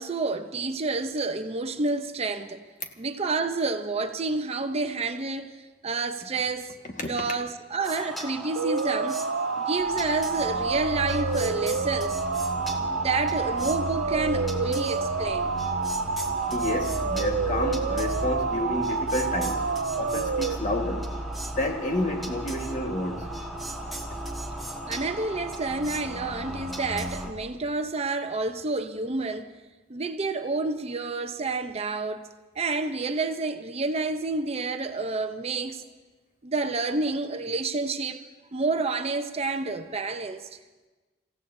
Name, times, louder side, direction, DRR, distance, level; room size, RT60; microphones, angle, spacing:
voice 1, 0.0-2.6 3.0-9.2 9.6-12.2 12.8-15.5 24.9-29.5 29.9-32.3 32.6-35.8 36.4-38.2 38.5-40.5, right 3 dB, 35° right, 0.6 m, -29 dB
sound 1, 7.8-27.3, equal, ahead, 1.5 m, -35 dB
sound 2, 8.6-20.5, right 5 dB, 80° right, 0.6 m, -29 dB
voice 2, 16.5-19.7 20.0-21.1 21.5-23.3, left 1 dB, 45° left, 1.5 m, -29 dB
30.0 x 15.5 x 2.7 m
head